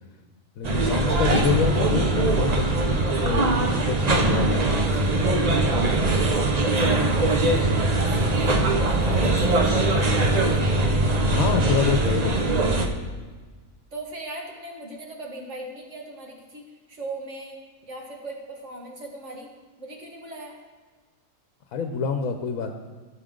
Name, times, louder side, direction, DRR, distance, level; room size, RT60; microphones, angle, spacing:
voice 1, 0.6-5.3 9.1-9.3 11.3-12.6 21.7-22.7, left 6 dB, 75° left, 5 dB, 1.2 m, -27 dB
sound 1, 0.6-12.9, right 2 dB, 35° right, 0.8 m, -21 dB
voice 2, 6.7-8.6 8.9-10.8 13.9-17.6 17.9-19.5 19.8-20.6, right 2 dB, 55° right, 0 dB, 2.0 m, -39 dB
16.5 x 6.6 x 3.8 m, 1.4 s
omnidirectional pair, 1.4 m